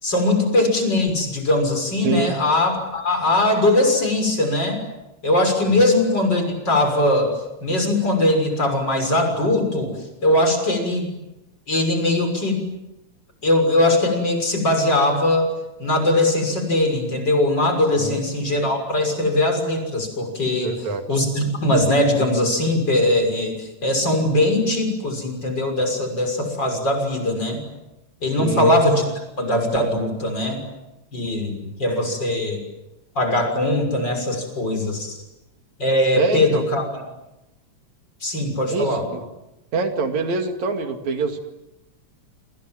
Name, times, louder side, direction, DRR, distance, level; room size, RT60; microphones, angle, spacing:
voice 1, 0.0-4.8 5.2-7.3 7.6-9.9 10.2-11.1 11.7-12.7 13.4-15.5 15.8-20.8 21.1-27.6 28.2-29.0 29.4-30.6 31.1-32.6 33.1-35.2 35.8-36.8 38.2-39.0, left 1 dB, 35° left, 5 dB, 7.0 m, -20 dB
voice 2, 2.0-2.3 5.7-5.8 18.0-18.2 20.6-21.2 28.3-28.7 36.1-36.6 38.7-39.2 39.7-41.4, right 4 dB, 70° right, 5 dB, 3.6 m, -25 dB
28.5 x 27.5 x 7.7 m, 0.93 s
omnidirectional pair, 3.3 m